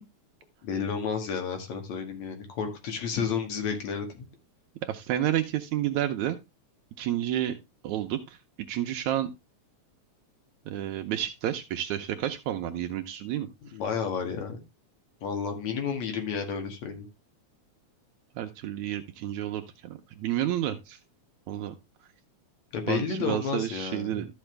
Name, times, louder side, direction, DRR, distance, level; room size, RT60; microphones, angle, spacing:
voice 1, 0.6-4.2 13.7-14.6 15.2-17.1 22.7-24.2, left 6 dB, 65° left, 5 dB, 3.2 m, -31 dB
voice 2, 4.8-6.4 7.0-7.6 7.8-8.4 8.7-9.3 10.7-13.5 18.4-21.0 21.5-21.8 22.9-24.3, right 12 dB, 75° right, 6 dB, 2.1 m, -30 dB
13.0 x 6.2 x 3.3 m, 0.23 s
omnidirectional pair, 3.4 m